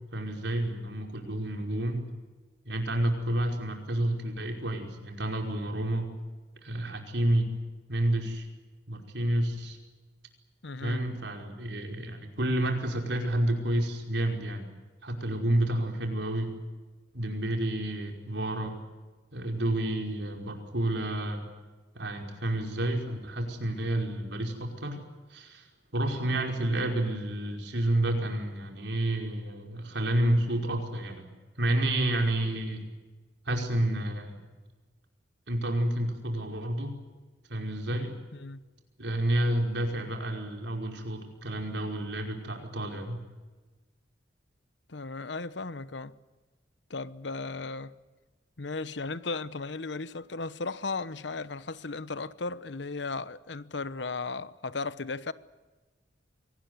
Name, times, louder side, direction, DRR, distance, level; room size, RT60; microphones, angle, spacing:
voice 1, 0.1-2.0 2.6-6.1 6.6-7.5 7.9-8.5 8.9-9.8 10.8-14.7 15.0-16.5 17.1-18.8 19.3-21.4 21.9-25.0 25.3-25.6 25.9-31.3 31.6-32.8 33.4-34.4 35.5-36.9 37.5-38.1 39.0-43.2, right 1 dB, 70° right, 5.2 m, -30 dB
voice 2, 10.6-11.0 37.9-38.0 38.3-38.6 44.9-46.1 46.9-47.9 48.6-55.3, left 3 dB, 75° left, 1.0 m, -36 dB
25.0 x 19.0 x 9.6 m
head